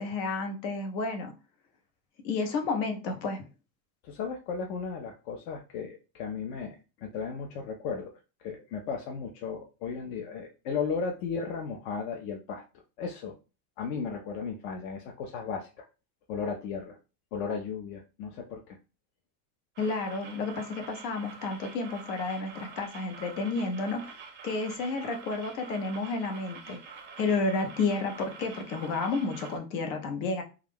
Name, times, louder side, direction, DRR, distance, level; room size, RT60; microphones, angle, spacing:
voice 1, 0.0-1.3 2.2-3.4 19.8-26.8 27.2-30.4, left 3 dB, 85° left, 4 dB, 1.0 m, -31 dB
voice 2, 4.0-8.1 8.4-12.6 13.0-13.3 13.8-15.9 16.3-17.0 17.3-18.8, left 5 dB, 65° left, 1 dB, 0.7 m, -35 dB
sound 1, 19.8-29.6, right 5 dB, 25° right, 0.4 m, -47 dB
2.4 x 2.3 x 3.4 m, 0.32 s
supercardioid pair, 125°, 49 cm